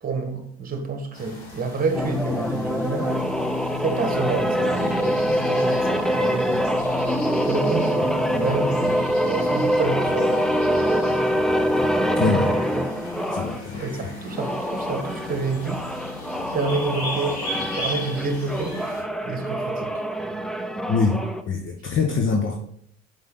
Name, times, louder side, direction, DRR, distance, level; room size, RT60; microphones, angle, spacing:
voice 1, 0.0-3.2 3.8-6.7 7.5-10.6 13.7-15.9 16.5-17.4 17.7-18.8 19.1-20.0, right 4 dB, 25° right, 1.5 m, -28 dB
sound 1, 1.1-19.0, left 2 dB, 85° left, 2.2 m, -38 dB
sound 2, 1.9-13.6 14.3-21.4, equal, ahead, 0.5 m, -24 dB
voice 2, 12.2-12.5 13.3-13.8 20.9-21.2 21.5-22.6, left 4 dB, 40° left, 1.1 m, -23 dB
5.4 x 5.2 x 4.0 m
hypercardioid pair, 70°, 32 cm